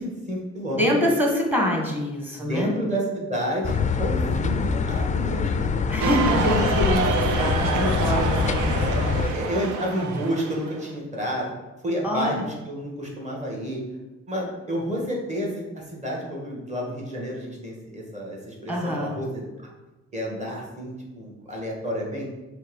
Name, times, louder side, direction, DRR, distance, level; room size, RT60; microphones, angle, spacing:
voice 1, 0.0-0.9 2.4-6.3 9.3-11.5 11.8-13.8 14.3-19.7 20.1-22.3, equal, 25° right, -2 dB, 1.9 m, -30 dB
voice 2, 0.7-2.7 5.9-9.4 12.0-12.4 18.7-19.1, left 1 dB, 5° right, 0 dB, 1.6 m, -25 dB
sound 1, 3.6-9.3, left 5 dB, 25° left, 0.4 m, -25 dB
sound 2, 6.0-10.9, right 5 dB, 80° right, 0.7 m, -27 dB
5.6 x 3.1 x 5.4 m, 1.1 s
cardioid pair, 90°, 30 cm